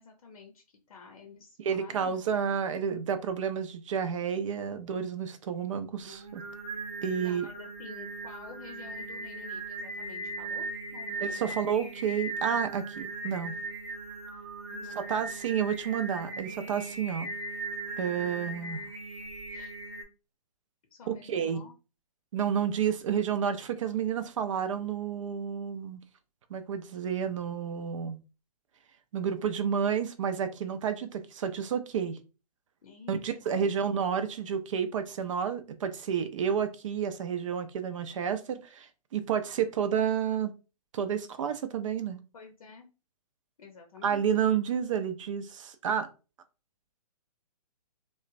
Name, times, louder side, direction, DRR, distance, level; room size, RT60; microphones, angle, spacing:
voice 1, 0.0-2.5 7.2-11.4 14.7-15.0 19.5-19.7 20.9-21.7 32.8-33.5 42.3-42.9 43.6-44.2, left 4 dB, 65° left, 0.6 m, -50 dB
voice 2, 1.6-6.4 7.0-7.5 11.2-13.5 15.0-17.3 18.0-18.8 21.1-21.6 22.3-26.0 26.5-28.2 29.1-32.2 33.1-40.5 40.9-42.2 44.0-46.1, right 7 dB, 55° right, 0.5 m, -30 dB
Singing, 6.0-20.0, right 2 dB, 25° right, 0.8 m, -39 dB
3.0 x 2.1 x 2.4 m
hypercardioid pair, 130°, 20 cm